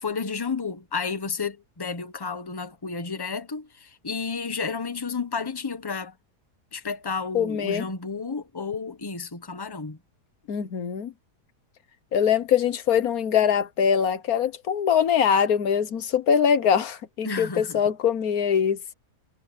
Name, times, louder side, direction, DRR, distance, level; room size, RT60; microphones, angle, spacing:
voice 1, 0.0-6.1 6.7-10.0 17.2-17.8, left 5 dB, 15° left, 1.1 m, -31 dB
voice 2, 7.3-7.8 10.5-11.1 12.1-18.8, left 8 dB, 65° left, 1.5 m, -23 dB
omnidirectional pair, 1.7 m